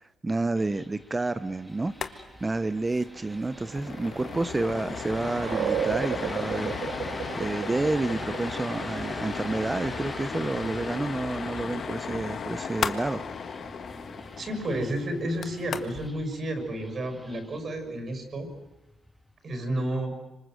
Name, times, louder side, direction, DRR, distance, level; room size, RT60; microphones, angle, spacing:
voice 1, 0.2-6.8 7.3-13.2, right 2 dB, 20° right, 13 dB, 0.9 m, -30 dB
sound 1, 0.5-19.5, equal, ahead, 2.5 m, -45 dB
sound 2, 1.9-2.1 2.4-2.5 2.8-3.0 3.4-16.1, left 6 dB, 55° left, 1.5 m, -36 dB
sound 3, 2.9-14.3, right 8 dB, 75° right, 1.9 m, -37 dB
voice 2, 14.4-18.5 19.4-20.1, right 1 dB, 45° right, 6 dB, 6.4 m, -31 dB
26.5 x 25.5 x 7.9 m, 0.96 s
cardioid pair, 90°, 0 cm